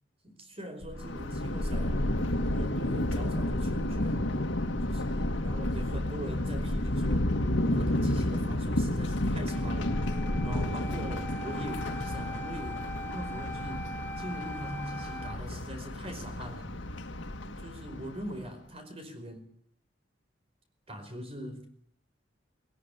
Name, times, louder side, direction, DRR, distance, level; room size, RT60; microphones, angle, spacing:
voice 1, 0.2-2.0 2.4-4.3 4.8-10.0 10.4-13.9 14.2-16.7 17.4-19.5 20.9-21.7, equal, 30° right, 7 dB, 5.0 m, -42 dB
sound 1, 0.8-10.7, left 1 dB, 45° left, 1.0 m, -38 dB
Thunder, 1.0-18.3, left 1 dB, 85° left, 2.0 m, -32 dB
Wind instrument woodwind instrument, 9.5-15.4, equal, 10° left, 1.5 m, -42 dB
19.5 x 19.0 x 8.3 m, 0.63 s
head